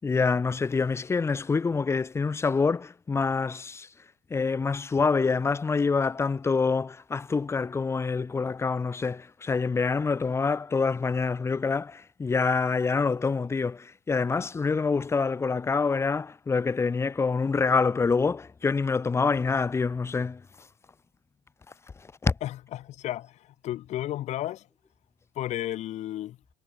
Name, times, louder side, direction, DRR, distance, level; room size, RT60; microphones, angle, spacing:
voice 1, 0.0-3.9 4.3-20.4 22.2-22.3, left 4 dB, 15° left, 6.3 m, -26 dB
voice 2, 22.4-24.7 25.4-26.4, left 13 dB, 40° left, 3.6 m, -33 dB
cardioid pair, 160°, 17 cm